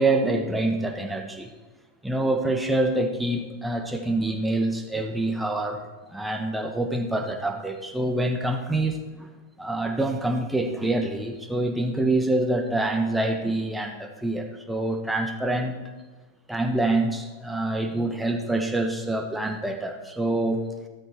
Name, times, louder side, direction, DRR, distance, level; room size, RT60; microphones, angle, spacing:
voice 1, 0.0-1.5 2.0-5.8 6.1-9.3 9.6-15.7 16.5-20.6, right 2 dB, 5° right, 4 dB, 1.3 m, -26 dB
13.5 x 13.0 x 4.5 m, 1.3 s
figure-of-eight pair, 90°, 0 cm